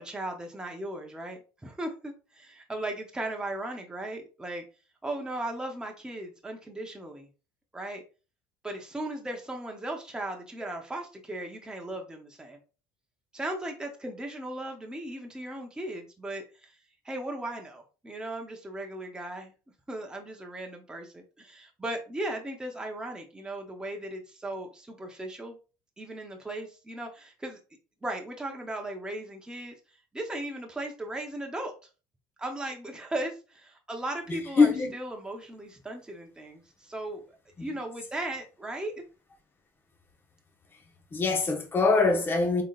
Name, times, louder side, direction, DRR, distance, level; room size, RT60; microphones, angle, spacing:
voice 1, 0.0-4.6 5.0-7.3 7.7-8.0 8.6-12.6 13.3-16.8 17.0-19.5 19.9-25.6 26.0-27.6 28.0-29.7 30.1-31.7 32.4-38.9, right 1 dB, 10° right, 0.9 m, -37 dB
voice 2, 34.6-34.9 37.6-37.7 41.1-42.6, left 4 dB, 25° left, 1.1 m, -23 dB
3.8 x 3.7 x 2.4 m
cardioid pair, 120°, 9 cm